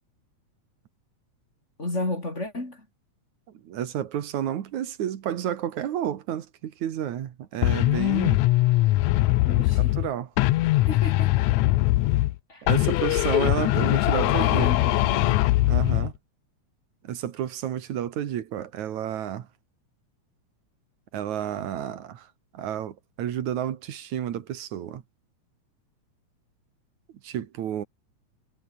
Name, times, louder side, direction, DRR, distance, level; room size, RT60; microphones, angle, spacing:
voice 1, 1.8-2.8 9.4-10.0 10.8-11.5 12.5-12.7 14.2-15.4, left 2 dB, 20° left, 4.4 m, -33 dB
voice 2, 3.6-8.4 9.6-10.3 12.6-14.7 15.7-16.1 17.0-19.5 21.1-22.3 22.5-25.0 27.2-27.9, right 10 dB, 75° right, 2.9 m, -31 dB
sound 1, 7.6-10.1 10.4-12.4 12.7-16.1, left 17 dB, 80° left, 2.0 m, -21 dB
omnidirectional pair, 3.4 m